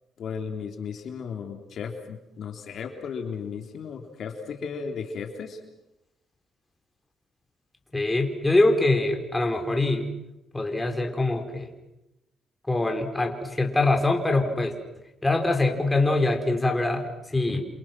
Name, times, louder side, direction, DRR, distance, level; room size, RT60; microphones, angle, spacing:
voice 1, 0.2-5.6, left 6 dB, 65° left, 4 dB, 3.5 m, -35 dB
voice 2, 7.9-10.1 10.5-11.7 12.7-14.7 15.2-17.0 17.3-17.6, left 2 dB, 15° left, 3 dB, 4.8 m, -23 dB
30.0 x 27.0 x 6.2 m, 0.92 s
cardioid pair, 90°, 0 cm